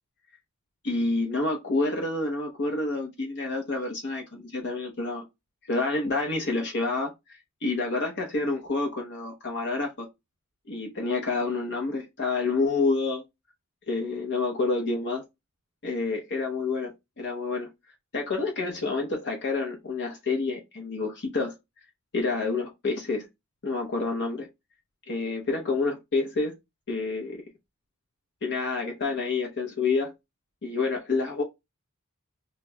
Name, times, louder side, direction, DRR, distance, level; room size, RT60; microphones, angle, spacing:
voice 1, 0.8-5.2 5.7-10.1 10.7-13.2 13.9-15.2 15.8-17.7 18.1-21.5 22.1-23.2 23.6-24.5 25.1-26.5 26.9-27.4 28.4-30.1 30.6-31.4, left 3 dB, 55° left, 0.8 m, -28 dB
5.9 x 2.2 x 2.2 m
head